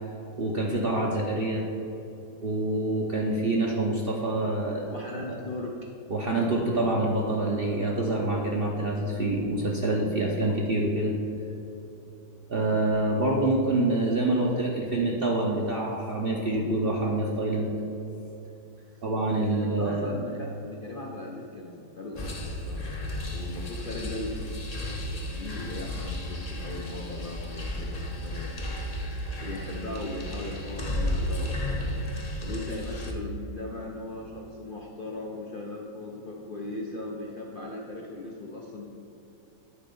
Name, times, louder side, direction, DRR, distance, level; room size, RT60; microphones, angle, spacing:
voice 1, 0.4-1.6 2.4-5.4 6.1-11.2 12.5-17.7 19.0-20.1, right 2 dB, 55° right, -2 dB, 0.6 m, -26 dB
voice 2, 4.9-5.8 18.8-19.0 19.5-22.9 23.3-28.7 29.4-31.8 32.4-38.9, left 2 dB, 80° left, -2 dB, 0.4 m, -38 dB
sound 1, 22.2-33.1, left 1 dB, 35° left, 0.7 m, -33 dB
10.0 x 4.3 x 5.3 m, 2.9 s
omnidirectional pair, 1.9 m